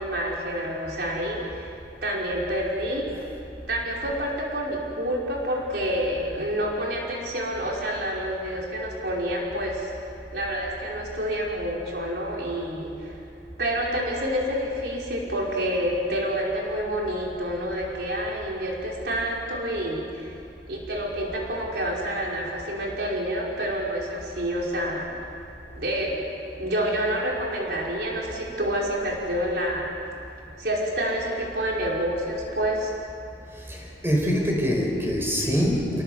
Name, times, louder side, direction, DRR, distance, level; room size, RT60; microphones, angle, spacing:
voice 1, 0.0-1.7 2.0-3.1 3.7-9.9 10.3-13.2 13.6-20.3 20.7-25.1 25.7-26.2 26.5-30.0 30.6-32.9, equal, 65° right, -3 dB, 5.1 m, -28 dB
voice 2, 33.7-36.0, equal, 15° right, 0 dB, 4.7 m, -24 dB
29.5 x 18.0 x 8.1 m, 2.5 s
head